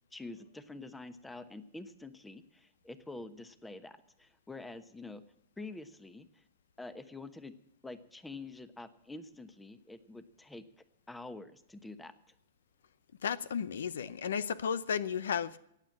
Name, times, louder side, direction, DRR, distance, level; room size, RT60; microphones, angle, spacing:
voice 1, 0.1-5.2 5.6-6.4 6.8-7.5 7.8-10.6 11.1-12.1, left 2 dB, 5° left, 13 dB, 1.1 m, -47 dB
voice 2, 13.2-15.6, left 7 dB, 85° left, 18 dB, 0.7 m, -33 dB
15.5 x 9.1 x 7.3 m, 0.74 s
hypercardioid pair, 130°, 0 cm